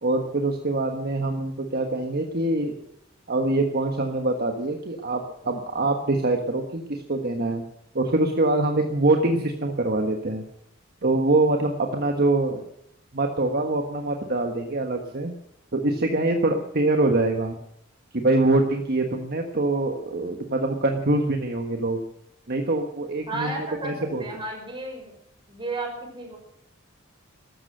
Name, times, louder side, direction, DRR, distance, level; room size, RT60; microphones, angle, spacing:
voice 1, 0.0-2.8 3.3-7.6 7.9-10.4 11.0-12.6 13.1-15.3 15.7-17.5 18.1-22.0 22.5-24.2, right 2 dB, 50° right, 4 dB, 1.4 m, -24 dB
voice 2, 23.3-25.1 25.5-26.4, right 2 dB, 25° right, 1 dB, 6.1 m, -33 dB
13.5 x 13.0 x 7.8 m, 0.74 s
head